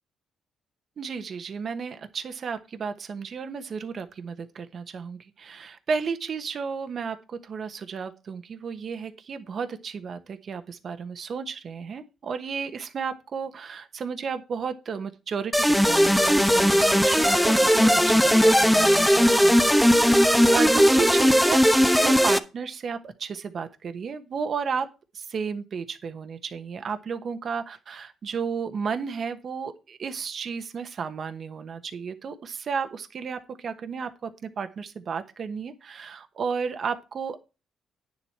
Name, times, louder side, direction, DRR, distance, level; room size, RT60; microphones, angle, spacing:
voice 1, 1.0-20.2 20.5-21.6 22.0-24.9 25.1-37.4, right 6 dB, 50° right, 9 dB, 1.1 m, -33 dB
sound 1, 15.5-22.4, equal, ahead, 0.9 m, -18 dB
9.6 x 7.3 x 4.6 m, 0.29 s
cardioid pair, 90°, 0 cm